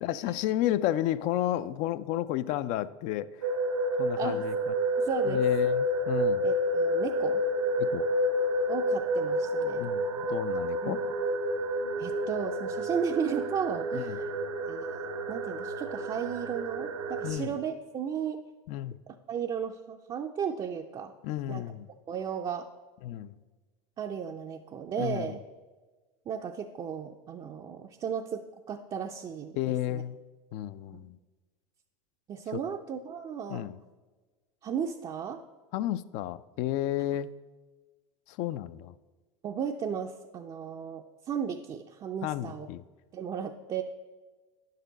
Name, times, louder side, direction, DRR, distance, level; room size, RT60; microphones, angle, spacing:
voice 1, 0.0-3.5 4.0-4.7 5.3-6.5 7.8-8.1 9.8-11.0 13.9-14.2 17.2-17.5 18.7-19.0 21.2-21.9 23.0-23.4 25.0-25.4 29.6-30.2 30.5-31.2 32.5-32.6 33.5-33.8 35.7-37.3 38.3-38.9 42.2-42.8, left 13 dB, 50° left, 15 dB, 0.4 m, -32 dB
sound 1, 3.4-17.3, equal, 85° right, 1.1 m, -29 dB
voice 2, 4.2-4.5 5.0-5.4 6.4-7.4 8.7-9.9 10.8-11.0 12.0-14.3 14.7-14.9 15.3-18.4 19.1-21.1 21.5-21.6 22.1-22.7 24.0-25.4 26.3-29.6 29.9-30.0 32.3-33.7 34.6-35.4 39.4-42.7 43.1-43.8, right 7 dB, 30° right, 3 dB, 0.5 m, -35 dB
10.0 x 6.6 x 4.0 m, 1.3 s
hypercardioid pair, 90°, 16 cm